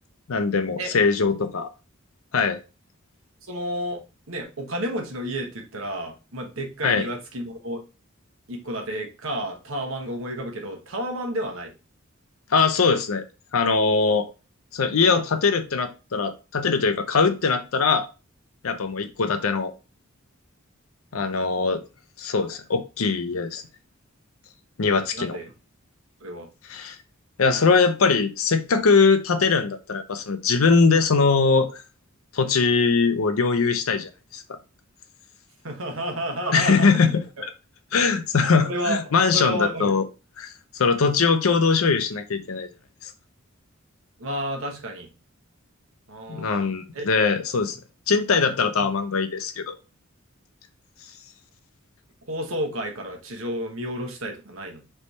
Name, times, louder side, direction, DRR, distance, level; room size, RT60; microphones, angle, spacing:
voice 1, 0.3-1.7 2.3-2.6 6.8-7.1 12.5-13.2 13.5-14.3 14.7-18.1 18.6-19.7 21.1-21.8 22.2-23.6 24.8-25.4 26.7-27.0 27.4-31.8 32.3-34.6 36.5-37.2 37.9-40.0 40.4-42.7 43.0-43.1 46.3-47.8 48.1-49.8, left 4 dB, 85° left, 8 dB, 0.6 m, -21 dB
voice 2, 3.5-4.0 4.3-7.8 8.5-11.7 25.1-25.5 26.2-26.5 35.6-37.1 38.6-40.1 44.2-45.1 46.1-46.7 46.9-47.2 48.8-48.9 52.3-54.8, right 1 dB, 75° right, 3 dB, 1.1 m, -31 dB
3.4 x 3.2 x 4.0 m, 0.30 s
head